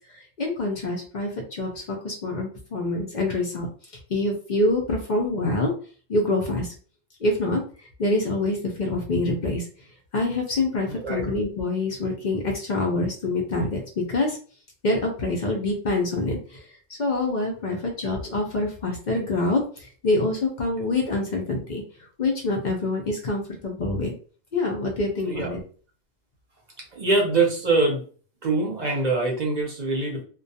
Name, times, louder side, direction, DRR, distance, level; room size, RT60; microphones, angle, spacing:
voice 1, 0.1-3.7 4.1-5.7 6.1-6.7 7.2-7.6 8.0-9.7 10.1-14.4 14.8-16.6 16.9-21.8 22.2-24.1 24.5-25.6, left 2 dB, 60° left, 0 dB, 0.5 m, -26 dB
voice 2, 10.9-11.3 25.3-25.5 26.9-28.1 28.4-30.2, right 3 dB, 45° right, -1 dB, 0.6 m, -24 dB
2.3 x 2.2 x 2.6 m, 0.41 s
omnidirectional pair, 1.4 m